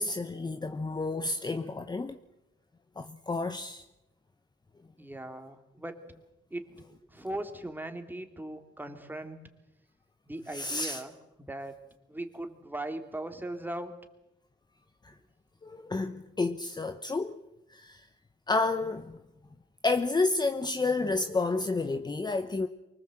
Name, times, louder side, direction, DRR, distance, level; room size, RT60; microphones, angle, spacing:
voice 1, 0.0-2.2 3.0-3.8 10.5-11.0 15.0-15.1 15.6-17.4 17.7-18.1 18.5-19.2 19.8-22.7, left 3 dB, 20° left, 0.9 m, -30 dB
voice 2, 5.0-6.1 6.5-6.7 7.1-9.4 10.3-11.1 11.5-11.7 12.1-13.9, right 1 dB, 10° right, 2.7 m, -39 dB
24.5 x 19.0 x 7.7 m
cardioid pair, 90°, 20 cm